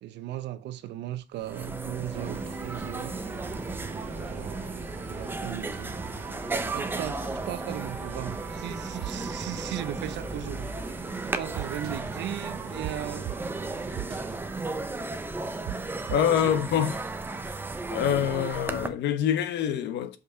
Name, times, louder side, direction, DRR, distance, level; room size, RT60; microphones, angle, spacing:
voice 1, 0.0-3.2 4.0-4.7 5.1-5.9 6.7-10.7 11.2-13.3, right 12 dB, 85° right, 0.9 m, -37 dB
sound 1, 1.1-1.2 1.4-18.9, right 2 dB, 10° right, 0.8 m, -35 dB
sound 2, 2.1-14.4, right 7 dB, 45° right, 0.9 m, -44 dB
sound 3, 9.0-9.1 9.6-9.7 11.6-11.9 12.8-12.9 13.3-13.4 14.0-14.2 15.7-15.8 16.1-16.4, right 17 dB, 70° right, 0.5 m, -35 dB
voice 2, 16.1-17.0 17.5-17.6 17.9-20.2, left 9 dB, 90° left, 1.1 m, -26 dB
6.6 x 5.4 x 5.6 m
cardioid pair, 155°, 17 cm